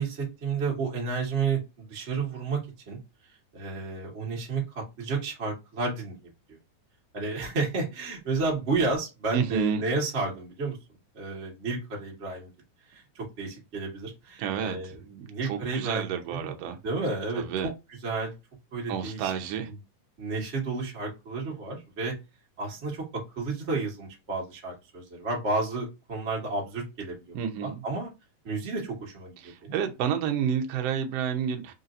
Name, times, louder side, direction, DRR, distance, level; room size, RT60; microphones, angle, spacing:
voice 1, 0.0-2.6 2.9-3.0 3.5-6.1 7.1-10.8 11.1-12.5 12.9-15.0 15.3-16.5 16.8-17.7 18.0-18.3 18.7-19.3 19.7-19.8 20.2-22.1 22.6-27.2 27.6-28.1 28.4-29.4 29.6-29.8, right 3 dB, 35° right, 1.2 m, -31 dB
voice 2, 9.3-9.8 14.4-14.8 15.0-16.8 17.4-17.7 18.9-19.7 27.3-27.8 29.4-31.7, right 8 dB, 75° right, 1.5 m, -30 dB
4.9 x 2.7 x 2.5 m
omnidirectional pair, 3.7 m